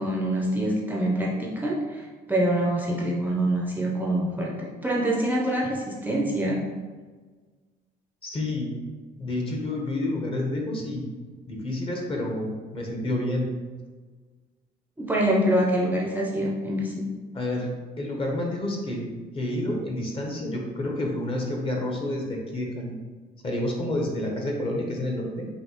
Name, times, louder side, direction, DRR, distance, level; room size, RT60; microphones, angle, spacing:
voice 1, 0.0-6.6 15.0-17.1, right 1 dB, 10° right, -2 dB, 0.6 m, -25 dB
voice 2, 8.2-8.8 9.2-11.1 11.5-13.5 17.3-17.7 18.0-23.0 23.4-25.5, left 1 dB, 30° left, 0 dB, 1.0 m, -29 dB
5.3 x 2.7 x 3.0 m, 1.4 s
cardioid pair, 110°, 17 cm